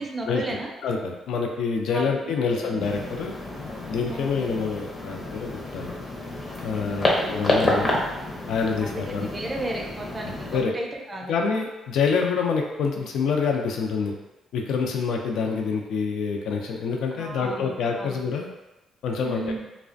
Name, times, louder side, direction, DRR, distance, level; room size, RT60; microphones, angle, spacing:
voice 1, 0.0-0.7 1.9-2.9 4.1-4.6 6.8-7.4 8.8-11.3 17.1-18.2 19.2-19.7, right 2 dB, 20° right, -1 dB, 0.4 m, -35 dB
voice 2, 0.8-3.3 3.9-5.9 6.6-7.9 8.5-9.3 10.5-10.7 11.3-14.1 14.5-18.5 19.0-19.4, left 5 dB, 80° left, 2 dB, 0.3 m, -26 dB
sound 1, 2.8-10.6, left 1 dB, 30° left, 0.6 m, -29 dB
2.4 x 2.1 x 2.5 m, 1.0 s
cardioid pair, 90°, 0 cm